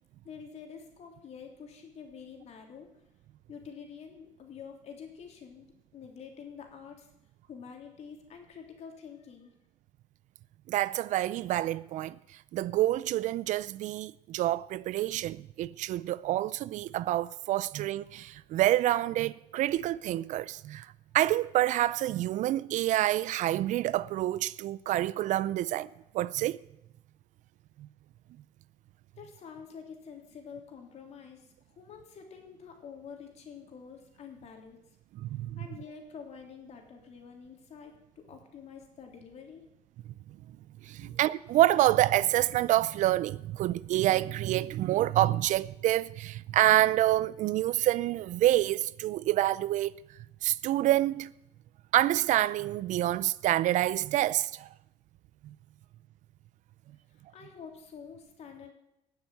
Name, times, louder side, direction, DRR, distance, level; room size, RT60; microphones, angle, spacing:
voice 1, 0.2-2.9 3.5-7.1 7.5-9.5 29.1-34.8 35.6-39.7 57.1-58.7, left 6 dB, 50° left, 3.3 m, -47 dB
voice 2, 10.7-12.2 12.5-25.9 26.1-26.6 27.8-27.9 35.2-35.6 40.8-50.0 50.4-51.3 51.9-54.7, right 14 dB, 60° right, 0.5 m, -27 dB
18.5 x 7.3 x 7.8 m
cardioid pair, 120°, 14 cm